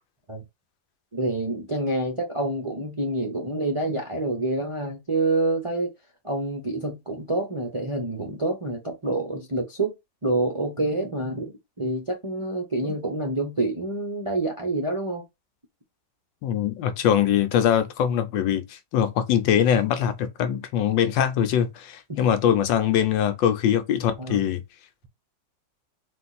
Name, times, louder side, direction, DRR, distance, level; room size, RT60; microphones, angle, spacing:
voice 1, 1.1-5.9 6.2-10.0 10.2-15.2 22.1-22.3 24.2-24.4, right 2 dB, 35° right, 0.5 m, -27 dB
voice 2, 16.4-24.6, left 9 dB, 80° left, 1.4 m, -22 dB
4.4 x 2.5 x 4.0 m
omnidirectional pair, 2.0 m